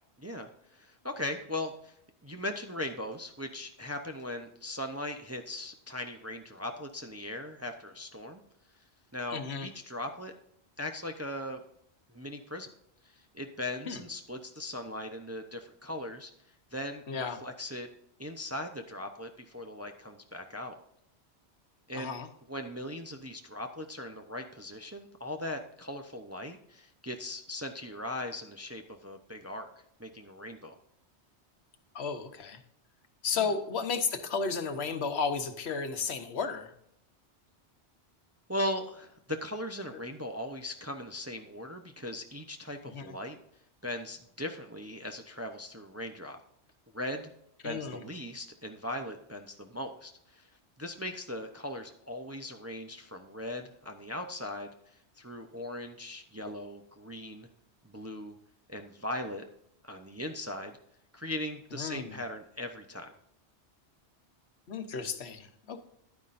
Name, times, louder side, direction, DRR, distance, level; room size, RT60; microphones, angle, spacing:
voice 1, 0.2-8.4 9.1-10.3 10.8-11.6 12.1-12.7 13.0-16.3 16.7-17.9 18.2-20.8 21.9-22.2 22.5-29.7 30.0-30.8 33.4-33.5 38.5-43.4 43.8-46.4 46.9-47.3 47.6-50.5 50.8-57.5 57.8-58.4 58.7-59.4 59.8-60.8 61.1-63.1, left 1 dB, 15° right, 5 dB, 0.6 m, -39 dB
voice 2, 9.3-9.7 13.9-14.0 17.1-17.4 21.9-22.3 31.9-32.6 33.2-36.7 42.9-43.1 47.6-48.0 61.8-62.1 64.7-65.8, left 5 dB, 70° left, 8 dB, 1.2 m, -33 dB
10.5 x 9.6 x 2.6 m, 0.71 s
omnidirectional pair, 1.1 m